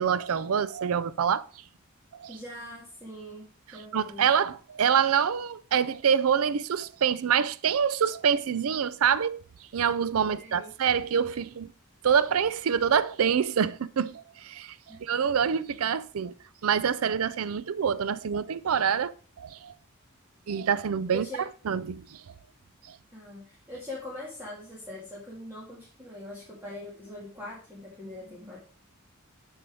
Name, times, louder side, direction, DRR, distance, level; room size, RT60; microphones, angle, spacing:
voice 1, 0.0-1.6 2.1-2.4 3.9-11.7 12.0-16.3 16.6-19.1 19.4-19.7 20.5-21.3 21.6-22.3 22.9-23.0, right 7 dB, 80° right, 0.5 m, -26 dB
voice 2, 2.3-4.2 10.4-10.7 21.1-21.5 23.1-28.6, left 1 dB, 10° right, 1.8 m, -42 dB
6.8 x 5.6 x 4.9 m
head